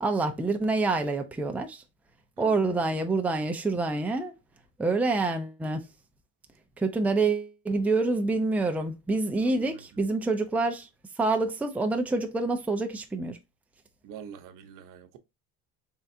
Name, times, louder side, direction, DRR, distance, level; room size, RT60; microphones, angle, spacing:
voice 1, 0.0-1.8 2.4-4.3 4.8-5.8 6.8-10.9 11.2-13.4, right 3 dB, 5° right, 0.5 m, -27 dB
voice 2, 2.4-2.7 9.3-10.2 14.0-15.2, right 7 dB, 65° right, 0.8 m, -46 dB
3.7 x 3.4 x 2.7 m
cardioid pair, 110°, 35 cm